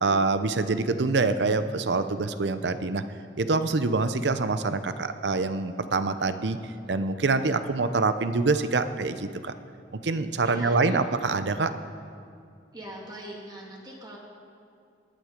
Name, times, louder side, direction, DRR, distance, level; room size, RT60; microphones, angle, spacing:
voice 1, 0.0-3.0 3.4-9.5 9.9-11.7, right 3 dB, 75° right, 11 dB, 0.7 m, -25 dB
voice 2, 10.4-11.1 12.7-14.2, right 1 dB, 25° right, -2 dB, 2.0 m, -42 dB
19.5 x 11.0 x 5.2 m, 2.4 s
head